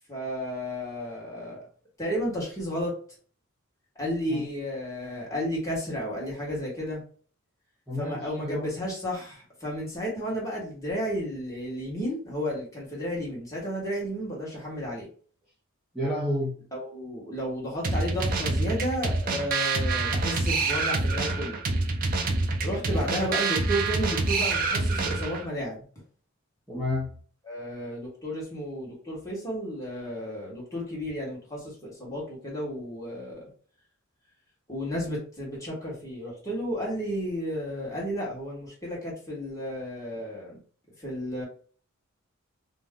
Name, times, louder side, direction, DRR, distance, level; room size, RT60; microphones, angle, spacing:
voice 1, 0.1-1.6 2.0-3.0 4.0-7.0 8.0-15.1 16.7-21.6 22.6-25.8 27.5-33.4 34.7-40.6 41.0-41.4, equal, 15° left, 1.2 m, -32 dB
voice 2, 7.9-8.7 15.9-16.6 22.6-23.3 26.7-27.1, left 1 dB, ahead, 0.6 m, -31 dB
sound 1, 17.8-25.5, right 3 dB, 40° right, 0.4 m, -27 dB
2.6 x 2.2 x 3.5 m
head